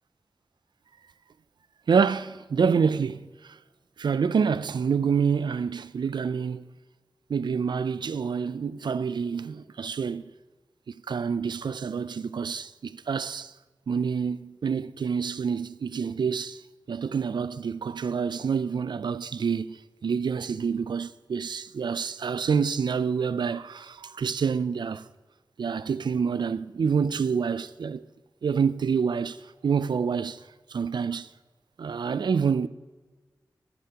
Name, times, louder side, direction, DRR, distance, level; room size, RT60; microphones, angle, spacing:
voice 1, 1.9-3.3 4.0-6.6 7.3-10.2 11.1-13.5 13.9-16.6 16.9-19.8 20.0-25.0 25.6-28.0 28.4-29.4 29.6-30.4 30.7-31.3 31.8-32.7, right 6 dB, 75° right, 0.3 m, -27 dB
13.5 x 9.3 x 2.9 m
wide cardioid pair, 65°, 8 cm